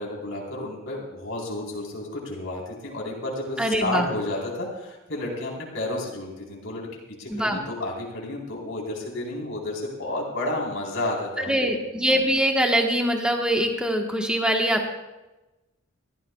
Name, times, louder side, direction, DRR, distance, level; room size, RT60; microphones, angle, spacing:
voice 1, 0.0-11.6, left 1 dB, 65° left, -2 dB, 4.0 m, -31 dB
voice 2, 3.6-4.1 7.3-7.6 11.5-14.9, equal, 5° right, 2 dB, 1.3 m, -23 dB
23.5 x 15.0 x 2.4 m, 1.0 s
head